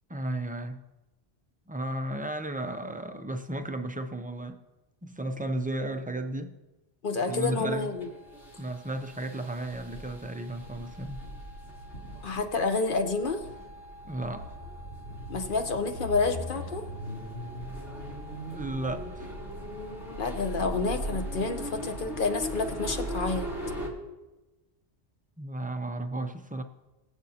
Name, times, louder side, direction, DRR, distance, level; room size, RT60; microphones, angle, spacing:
voice 1, 0.1-0.8 1.7-4.6 5.0-6.5 7.3-7.9 8.6-11.2 14.0-14.6 18.5-19.3 25.4-26.6, right 1 dB, 10° right, 0.4 m, -34 dB
voice 2, 7.0-8.1 12.2-13.4 15.3-16.8 20.2-23.5, left 4 dB, 55° left, 1.0 m, -29 dB
sound 1, 7.2-23.9, equal, 80° left, 2.9 m, -39 dB
21.0 x 7.8 x 2.8 m
omnidirectional pair, 1.1 m